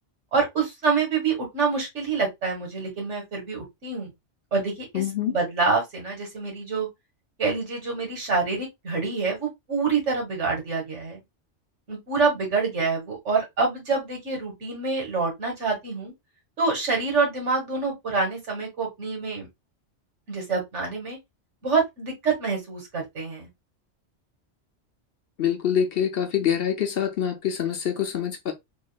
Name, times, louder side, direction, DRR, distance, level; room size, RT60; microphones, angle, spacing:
voice 1, 0.3-4.1 4.5-6.9 7.4-11.2 11.9-16.1 16.6-19.5 20.3-21.2 21.6-23.5, right 4 dB, 75° right, 1.9 m, -26 dB
voice 2, 4.9-5.4 25.4-28.5, left 9 dB, 60° left, 0.8 m, -25 dB
3.7 x 3.0 x 2.3 m
omnidirectional pair, 1.2 m